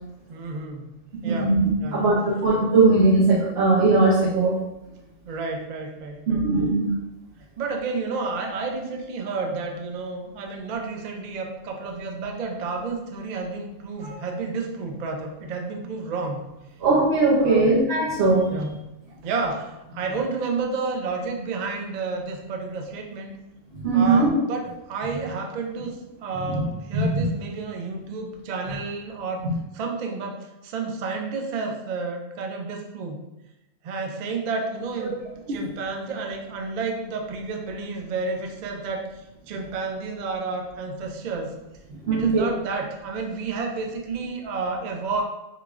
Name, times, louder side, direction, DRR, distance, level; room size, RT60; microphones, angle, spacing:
voice 1, 0.3-1.0 1.2-1.6 1.8-2.1 5.2-6.5 7.6-16.5 17.4-17.7 18.5-18.7 19.2-23.3 23.9-29.5 29.7-33.2 33.8-35.2 35.5-39.1 39.5-41.5 42.1-45.2, right 4 dB, 90° right, 2 dB, 0.3 m, -31 dB
voice 2, 1.2-4.6 6.3-6.9 14.0-14.1 16.8-18.8 23.8-24.3 26.4-26.6 26.9-27.2 29.4-29.5 35.0-35.1 35.5-35.6 41.9-42.5, right 3 dB, 60° right, -6 dB, 0.8 m, -20 dB
4.7 x 2.5 x 2.3 m, 0.95 s
omnidirectional pair, 1.4 m